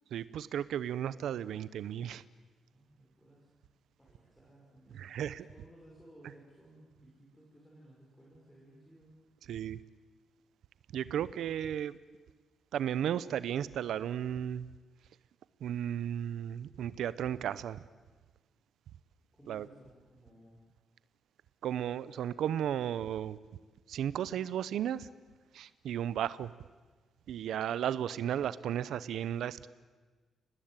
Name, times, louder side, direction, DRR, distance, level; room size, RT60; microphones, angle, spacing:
voice 1, 0.1-2.2 4.9-5.4 9.5-9.8 10.9-11.9 12.7-14.7 15.6-17.8 19.5-19.7 21.6-23.4 23.9-25.1 25.5-26.5 27.3-29.7, right 10 dB, 80° right, 16 dB, 0.8 m, -34 dB
voice 2, 2.7-3.5 4.0-9.1 19.3-20.6, right 1 dB, 5° left, -4 dB, 5.6 m, -58 dB
29.0 x 19.0 x 9.1 m, 1.4 s
cardioid pair, 140°, 0 cm